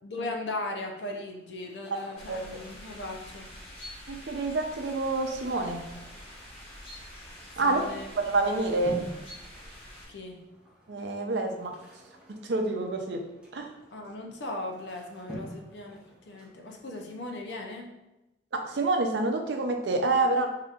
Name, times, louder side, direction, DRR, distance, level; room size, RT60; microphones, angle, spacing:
voice 1, 0.0-3.5 7.6-8.1 10.1-10.4 13.9-18.0, left 2 dB, 75° left, 2 dB, 0.6 m, -38 dB
sound 1, 0.9-17.8, equal, 5° right, 0.9 m, -49 dB
sound 2, 2.1-10.1, equal, 35° left, 1.2 m, -46 dB
voice 2, 2.3-2.6 4.1-5.8 7.6-7.8 8.1-9.0 10.9-11.8 12.3-13.2 13.5-13.7 18.5-20.5, right 2 dB, 80° right, 4 dB, 0.5 m, -28 dB
5.0 x 2.8 x 2.4 m, 0.95 s
head